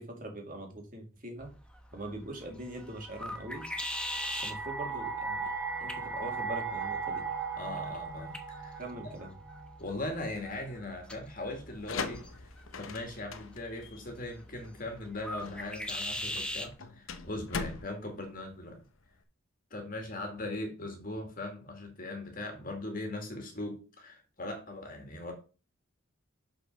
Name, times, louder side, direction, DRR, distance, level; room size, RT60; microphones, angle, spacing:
voice 1, 0.0-1.5 1.9-3.7 4.3-5.5 5.8-7.2 8.8-9.3, right 1 dB, 40° right, 2 dB, 2.3 m, -42 dB
sound 1, 1.4-16.7, left 1 dB, 5° left, 0.9 m, -43 dB
sound 2, 3.1-10.3, right 4 dB, 10° right, 2.2 m, -38 dB
voice 2, 7.6-8.8 9.8-12.5 12.8-18.8 19.7-25.3, left 2 dB, 40° left, 3 dB, 2.1 m, -39 dB
sound 3, 11.6-19.2, left 4 dB, 75° left, 0.8 m, -42 dB
6.7 x 5.3 x 5.3 m, 0.34 s
head